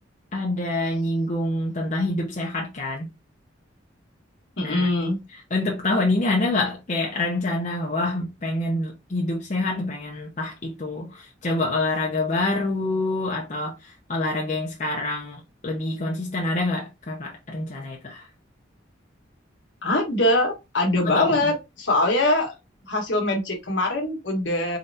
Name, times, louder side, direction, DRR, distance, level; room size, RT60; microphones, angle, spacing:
voice 1, 0.3-3.0 4.6-4.9 5.5-18.3 21.0-21.5, left 2 dB, 40° left, 0.7 m, -26 dB
voice 2, 4.6-5.2 19.8-22.5 22.8-24.8, left 1 dB, 65° left, 1.3 m, -23 dB
3.9 x 3.2 x 2.7 m
head